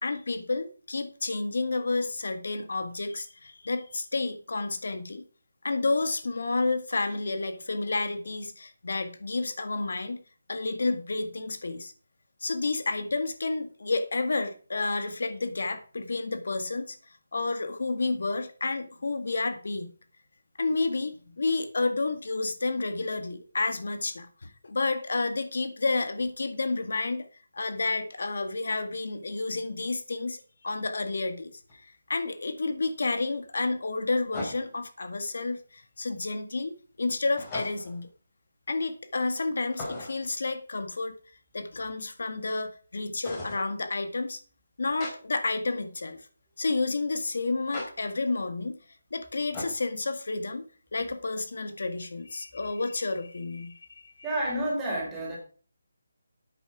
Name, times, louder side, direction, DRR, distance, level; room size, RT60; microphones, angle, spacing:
voice 1, 0.0-5.2 5.6-10.2 10.5-11.9 12.4-17.0 17.3-19.9 20.6-27.3 27.5-38.1 38.7-41.2 41.5-44.4 44.8-46.3 46.6-48.8 49.1-54.3, left 3 dB, 70° left, 9 dB, 1.9 m, -30 dB
sound 1, 31.7-31.8 34.3-34.9 37.4-38.0 39.7-40.3 43.2-43.7 45.0-45.1 47.7-47.9 49.5-49.8, left 2 dB, 15° left, 3.8 m, -38 dB
voice 2, 54.2-55.4, right 1 dB, 10° right, -4 dB, 4.3 m, -29 dB
11.0 x 8.9 x 4.9 m, 0.40 s
figure-of-eight pair, 170°, 0 cm